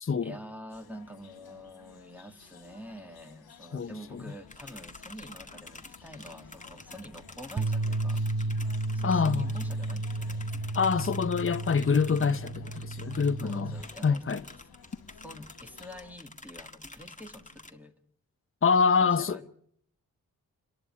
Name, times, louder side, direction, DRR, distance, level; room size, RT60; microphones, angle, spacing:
voice 1, 0.2-8.3 8.9-10.4 13.4-14.3 15.1-18.0 19.0-19.5, equal, 5° right, 2.3 m, -47 dB
sound 1, 0.7-16.2, left 5 dB, 85° left, 1.6 m, -53 dB
voice 2, 3.7-4.2 9.0-9.5 10.7-13.7 14.0-14.4 18.6-19.4, left 5 dB, 35° left, 0.9 m, -26 dB
sound 2, 4.5-17.7, left 2 dB, 20° left, 1.8 m, -49 dB
Bass guitar, 7.6-13.8, right 2 dB, 35° right, 0.8 m, -32 dB
28.0 x 11.0 x 9.9 m
cardioid pair, 40°, 36 cm